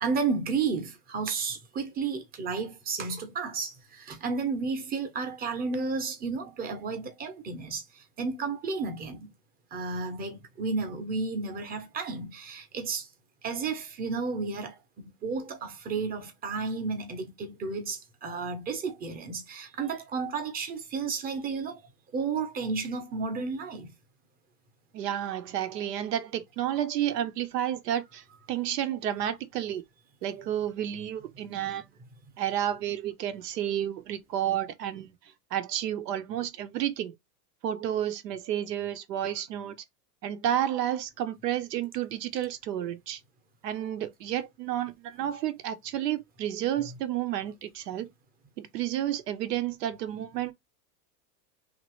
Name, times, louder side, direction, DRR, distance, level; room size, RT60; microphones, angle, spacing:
voice 1, 0.0-9.3 9.7-13.1 13.4-21.8 22.1-23.9, right 4 dB, 20° right, 0.7 m, -32 dB
voice 2, 24.9-29.8 30.2-31.9 32.4-35.1 35.5-37.1 37.6-39.8 40.2-43.2 43.6-48.1 48.6-50.5, right 11 dB, 90° right, 0.8 m, -31 dB
2.9 x 2.5 x 3.0 m
supercardioid pair, 135°, 47 cm